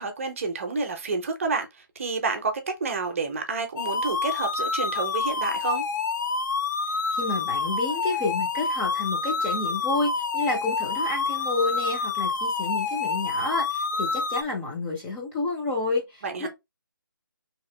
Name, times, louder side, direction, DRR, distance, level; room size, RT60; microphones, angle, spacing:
voice 1, 0.0-5.8 16.2-16.5, right 4 dB, 40° right, 0.6 m, -29 dB
sound 1, 3.8-14.4, left 4 dB, 55° left, 0.5 m, -28 dB
voice 2, 7.1-16.5, left 3 dB, 10° left, 0.5 m, -30 dB
2.9 x 2.4 x 3.2 m
figure-of-eight pair, 160°, 12 cm